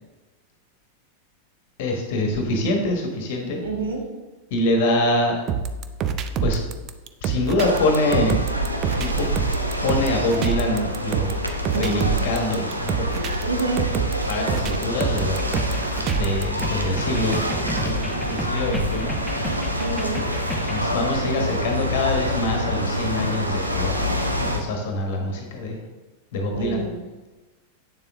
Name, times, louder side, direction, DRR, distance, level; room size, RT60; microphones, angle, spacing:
voice 1, 1.8-3.6 4.5-5.4 6.4-6.6 7.2-8.4 9.0-9.3 9.8-11.4 11.7-13.2 14.3-15.7 16.1-19.2 20.7-24.1 24.4-25.8 26.3-26.8, left 2 dB, 50° left, 3 dB, 1.4 m, -25 dB
voice 2, 3.6-4.0 11.7-12.0 13.4-13.8 19.8-20.2 26.5-26.9, right 3 dB, 65° right, 0 dB, 1.9 m, -27 dB
sound 1, 5.5-16.6, right 6 dB, 35° right, 0.6 m, -26 dB
sound 2, 7.6-24.6, equal, 85° right, 0.9 m, -27 dB
sound 3, 15.2-20.9, right 1 dB, ahead, 1.3 m, -32 dB
8.7 x 7.0 x 3.6 m, 1.2 s
figure-of-eight pair, 90°, 0 cm